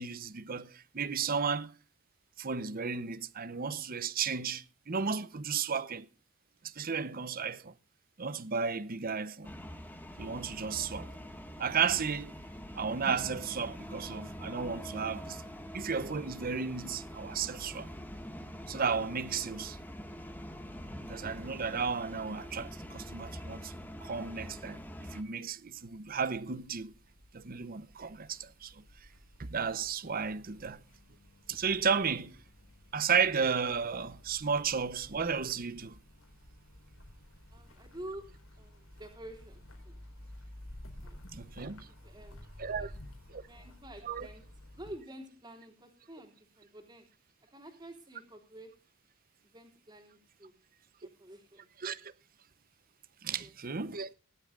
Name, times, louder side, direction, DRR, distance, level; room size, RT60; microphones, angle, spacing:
voice 1, 0.0-1.7 2.4-6.1 6.6-7.7 8.2-9.5 10.2-11.1 11.6-12.3 12.8-15.4 15.7-17.9 18.7-19.8 21.1-23.7 24.0-24.8 25.1-26.9 27.3-28.7 29.4-30.8 31.5-32.3 32.9-36.0 41.3-41.9 42.6-42.9 43.3-43.4 44.0-44.3 51.8-52.1 53.2-54.1, right 6 dB, 45° right, 0.8 m, -33 dB
sound 1, 9.4-25.2, equal, 10° left, 1.7 m, -44 dB
sound 2, 25.4-44.9, left 1 dB, 85° left, 4.3 m, -53 dB
voice 2, 37.5-38.3 38.6-40.0 41.0-41.2 41.9-42.4 42.8-42.9 43.3-44.4 44.7-47.1 47.5-48.7 49.4-50.5 51.0-51.7 53.4-53.5, right 1 dB, 20° right, 3.3 m, -49 dB
20.0 x 12.0 x 2.5 m
head